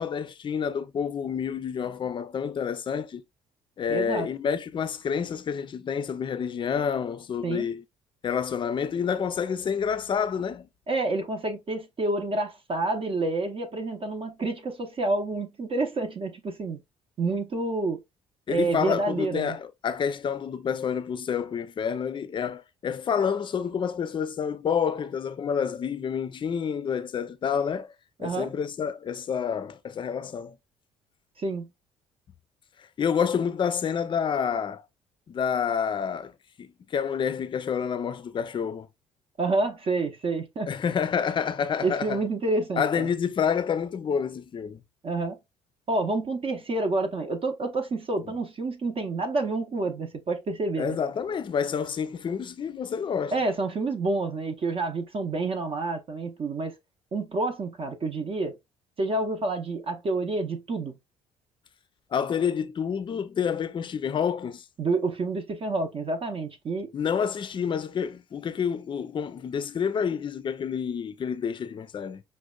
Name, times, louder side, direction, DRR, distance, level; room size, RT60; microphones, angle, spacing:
voice 1, 0.0-3.2 3.8-7.8 8.2-10.7 18.5-27.9 28.2-30.6 33.0-34.8 35.3-36.3 36.6-38.9 40.7-42.2 42.8-44.8 50.8-53.3 62.1-64.6 66.9-72.2, left 7 dB, 35° left, 0.4 m, -28 dB
voice 2, 3.9-4.3 7.4-7.7 10.9-16.8 17.2-18.0 18.5-19.6 28.2-28.5 31.4-31.7 39.4-40.7 41.8-43.1 45.0-45.4 45.9-51.0 53.3-56.8 57.1-58.6 59.0-61.0 64.8-66.9, right 3 dB, 40° right, 0.7 m, -28 dB
5.0 x 2.2 x 2.3 m
supercardioid pair, 65°, 14 cm